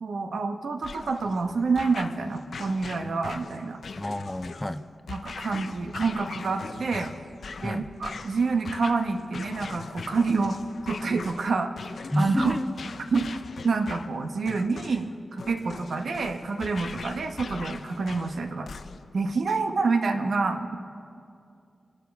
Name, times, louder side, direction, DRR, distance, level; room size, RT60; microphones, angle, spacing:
voice 1, 0.0-3.8 5.1-7.1 7.6-10.6 10.9-11.7 12.2-12.6 13.1-13.3 13.6-18.7 19.1-20.8, right 4 dB, 70° right, 6 dB, 0.9 m, -27 dB
sound 1, 0.8-19.2, left 5 dB, 70° left, 0.5 m, -41 dB
voice 2, 4.0-4.8 7.6-7.9 12.1-12.7, left 1 dB, 10° left, 11 dB, 0.4 m, -28 dB
26.5 x 12.0 x 3.5 m, 2.4 s
wide cardioid pair, 155°, 0 cm